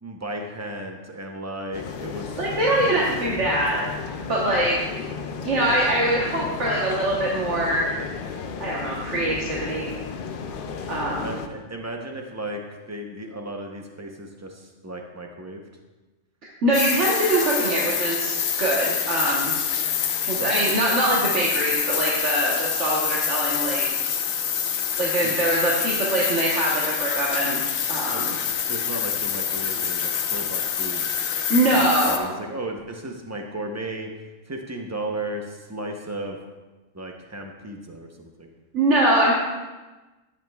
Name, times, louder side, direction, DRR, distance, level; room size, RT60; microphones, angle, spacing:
voice 1, 0.0-2.5 2.8-2.9 3.3-3.9 11.2-12.6 12.9-15.6 20.4-20.7 25.2-25.4 28.1-28.4 28.7-31.2 31.7-34.1 34.5-36.4 36.9-38.5, right 1 dB, 15° right, 2 dB, 0.6 m, -35 dB
sound 1, 1.7-11.5, left 5 dB, 60° left, 0.6 m, -34 dB
voice 2, 2.4-3.8 4.3-4.8 5.4-7.9 8.6-9.9 10.9-11.3 16.6-19.6 20.3-23.8 25.0-27.6 27.9-28.3 31.5-32.3 38.7-39.3, right 1 dB, 60° right, -5 dB, 1.4 m, -23 dB
sound 2, 16.7-32.2, left 8 dB, 90° left, 1.1 m, -26 dB
11.0 x 8.5 x 2.3 m, 1.2 s
omnidirectional pair, 1.4 m